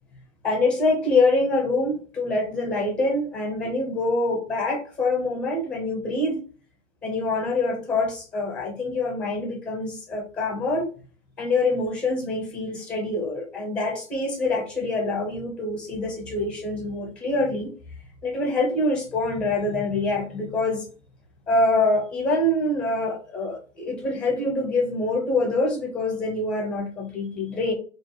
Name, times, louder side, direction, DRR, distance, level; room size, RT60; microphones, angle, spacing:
voice 1, 0.4-6.4 7.0-10.9 11.4-17.7 18.2-20.8 21.5-27.7, left 2 dB, 10° left, 0 dB, 0.8 m, -25 dB
2.5 x 2.1 x 3.1 m, 0.39 s
hypercardioid pair, 120°, 40 cm